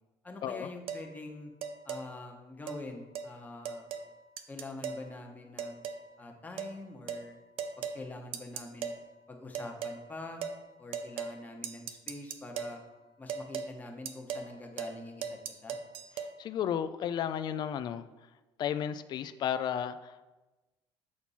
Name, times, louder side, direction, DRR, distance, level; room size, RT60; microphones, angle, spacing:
voice 1, 0.2-1.5 1.8-3.8 4.5-5.8 6.2-7.4 7.8-8.9 9.3-10.4 10.8-12.8 13.2-15.8, left 2 dB, 15° left, 2 dB, 1.2 m, -45 dB
sound 1, 0.9-1.1 1.6-2.0 2.7-2.8 3.2-3.3 3.7-4.1 4.4-5.0 5.6-6.1 6.6-6.7 7.1-7.3 7.6-8.0 8.3-9.0 9.5-10.0 10.4-10.6 10.9-11.4 11.6-12.8 13.3-13.7 14.1-14.5 14.8-15.0 15.2-16.3, right 6 dB, 65° right, 0.6 m, -38 dB
voice 2, 16.4-18.1 18.6-20.3, left 9 dB, 50° left, 11 dB, 0.4 m, -33 dB
7.3 x 4.4 x 4.2 m, 1.1 s
cardioid pair, 105°, 10 cm